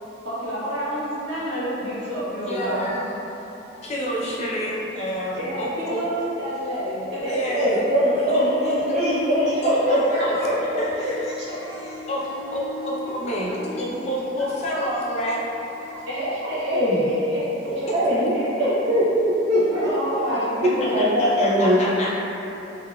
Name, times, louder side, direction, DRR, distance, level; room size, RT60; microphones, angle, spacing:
voice 1, 0.2-2.9 5.4-8.0 13.8-13.9 14.4-14.5 15.8-18.7 19.7-21.2, equal, 70° right, -9 dB, 0.8 m, -29 dB
voice 2, 2.4-6.0 7.3-7.8 8.3-8.8 9.6-16.1 17.3-17.7 20.8-22.1, equal, 35° left, -5 dB, 0.4 m, -29 dB
Harp, 6.9-7.0 7.2-16.7, left 1 dB, 80° left, 0.8 m, -40 dB
voice 3, 7.5-10.8 16.7-17.1 17.9-18.3 18.6-19.9 20.3-20.4 20.9-21.9, equal, 40° right, -11 dB, 0.4 m, -21 dB
3.6 x 2.2 x 2.2 m, 3.0 s
head